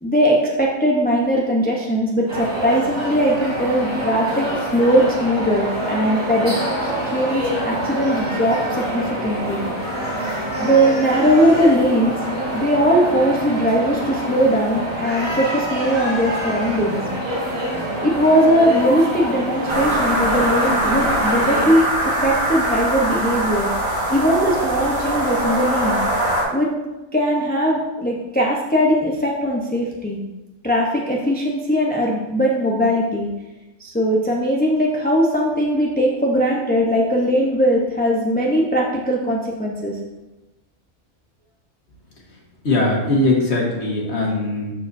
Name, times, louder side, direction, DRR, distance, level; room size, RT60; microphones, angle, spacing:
voice 1, 0.0-9.6 10.6-12.2 12.5-17.0 18.0-23.7 24.1-26.0 26.5-26.7 27.1-30.2 30.6-33.3 33.8-40.0, equal, 10° left, -3 dB, 0.6 m, -19 dB
sound 1, 2.3-21.7, right 1 dB, 25° right, 3.1 m, -26 dB
sound 2, 19.7-26.4, right 1 dB, 55° right, 2.8 m, -22 dB
voice 2, 42.6-44.7, left 2 dB, 50° left, -2 dB, 1.8 m, -20 dB
13.5 x 4.7 x 2.7 m, 1.1 s
omnidirectional pair, 1.5 m